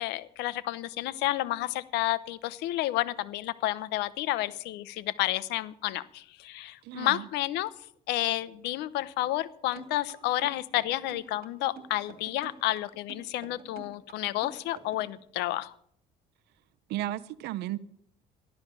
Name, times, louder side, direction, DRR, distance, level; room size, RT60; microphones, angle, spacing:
voice 1, 0.0-7.7 8.1-15.7, left 15 dB, 90° left, 16 dB, 0.8 m, -31 dB
voice 2, 6.8-7.3 16.9-17.8, right 14 dB, 80° right, 14 dB, 0.7 m, -34 dB
sound 1, 9.8-15.1, right 7 dB, 60° right, 2.5 m, -48 dB
14.5 x 11.5 x 6.9 m, 0.67 s
cardioid pair, 110°, 17 cm